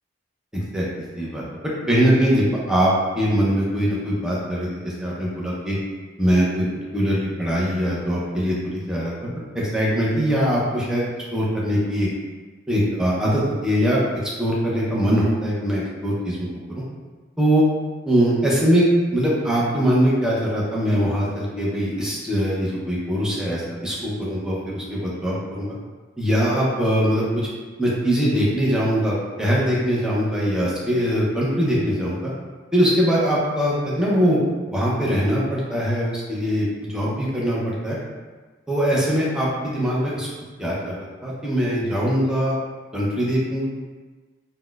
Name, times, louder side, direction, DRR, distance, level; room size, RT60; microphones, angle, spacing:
voice 1, 0.5-0.8 1.1-1.4 1.9-5.8 6.2-6.7 6.9-11.0 11.3-12.1 12.7-14.0 14.4-16.8 17.4-17.6 18.1-18.9 19.1-25.7 26.2-27.5 27.8-32.3 32.7-34.4 34.7-38.0 38.7-40.3 40.6-41.0 41.2-42.6 42.9-43.6, equal, 5° right, -6 dB, 0.6 m, -22 dB
4.0 x 2.1 x 2.3 m, 1.3 s
head